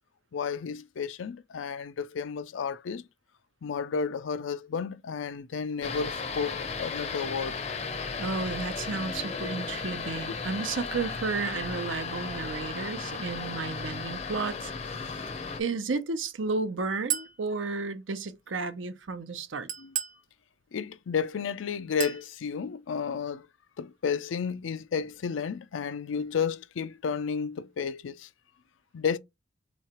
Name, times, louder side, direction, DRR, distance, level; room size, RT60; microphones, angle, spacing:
voice 1, 0.3-3.0 3.6-7.6 19.8-19.9 20.7-23.5 23.8-28.3 28.9-29.2, left 6 dB, 85° left, 0.4 m, -32 dB
sound 1, 5.8-15.6, left 4 dB, 35° left, 0.5 m, -35 dB
voice 2, 8.2-14.7 15.6-19.7, right 4 dB, 85° right, 0.7 m, -32 dB
Chink clink, 17.1-17.4 19.7-20.2 22.0-22.3, right 10 dB, 40° right, 0.6 m, -32 dB
3.8 x 3.1 x 4.3 m
head